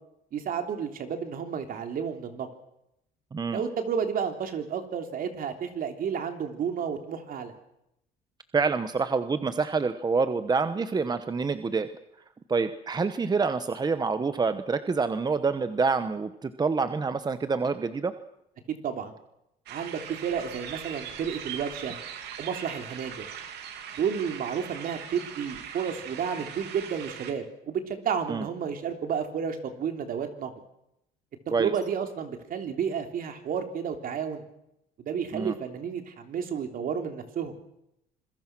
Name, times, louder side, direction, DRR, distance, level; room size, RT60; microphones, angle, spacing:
voice 1, 0.3-2.5 3.5-7.5 18.7-19.1 19.7-22.0 22.4-23.3 24.0-30.5 31.6-34.4 35.0-37.5, right 7 dB, 55° right, 6 dB, 3.4 m, -31 dB
voice 2, 3.3-3.6 8.5-11.9 12.5-18.1 28.3-28.5 31.5-31.7 35.3-35.5, right 4 dB, 25° right, 11 dB, 1.1 m, -27 dB
sound 1, 19.7-27.3, right 8 dB, 80° right, 2.9 m, -40 dB
26.5 x 22.0 x 6.2 m, 0.81 s
cardioid pair, 110°, 17 cm